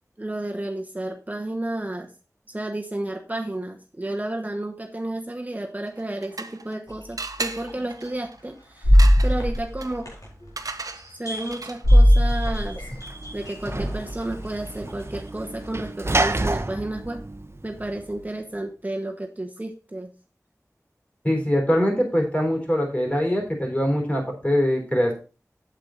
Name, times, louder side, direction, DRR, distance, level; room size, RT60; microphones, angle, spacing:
voice 1, 0.2-2.1 2.5-10.1 11.2-12.8 13.3-17.2 17.6-20.1, right 1 dB, 25° right, 2 dB, 1.1 m, -32 dB
sound 1, 5.9-6.8 7.2-12.0, right 3 dB, 90° right, 0.7 m, -36 dB
sound 2, 6.9-7.0 7.7-7.8 8.8-10.5 11.0-14.1 14.9-15.0, equal, 75° left, 4.5 m, -19 dB
Sliding door / Slam, 12.4-18.2, right 2 dB, 45° right, 0.8 m, -30 dB
voice 2, 21.2-25.1, equal, 25° left, 1 dB, 4.0 m, -23 dB
8.2 x 7.9 x 3.9 m, 0.35 s
wide cardioid pair, 50°, 6 cm